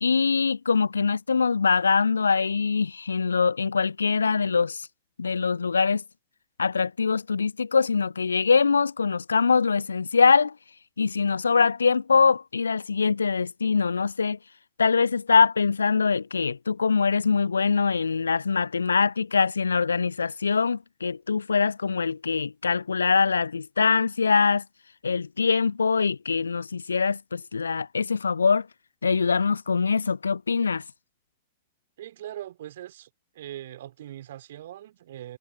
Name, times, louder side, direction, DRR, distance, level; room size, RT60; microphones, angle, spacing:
voice 1, 0.0-4.9 5.2-6.0 6.6-10.6 11.0-14.4 14.8-24.6 25.0-28.7 29.0-30.8, left 5 dB, 75° left, 0.4 m, -23 dB
voice 2, 32.0-33.1 33.3-35.4, right 12 dB, 60° right, 3.2 m, -40 dB
figure-of-eight pair, 90°, 0 cm